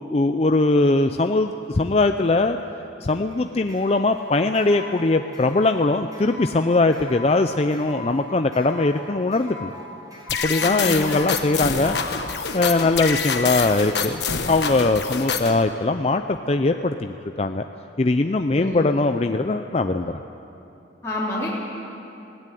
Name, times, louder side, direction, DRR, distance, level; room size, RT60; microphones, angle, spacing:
voice 1, 0.1-2.6 3.0-9.7 10.4-12.0 12.5-14.2 14.5-17.6 18.0-20.2, left 2 dB, 35° left, 7 dB, 0.5 m, -21 dB
sound 1, 3.1-13.1, left 2 dB, 20° right, 7.1 m, -40 dB
sound 2, 10.3-15.6, left 5 dB, 65° left, 1.3 m, -26 dB
voice 2, 10.6-11.2 18.5-18.9 21.0-21.5, left 1 dB, 15° left, -9 dB, 3.5 m, -29 dB
20.0 x 17.0 x 9.2 m, 2.8 s
head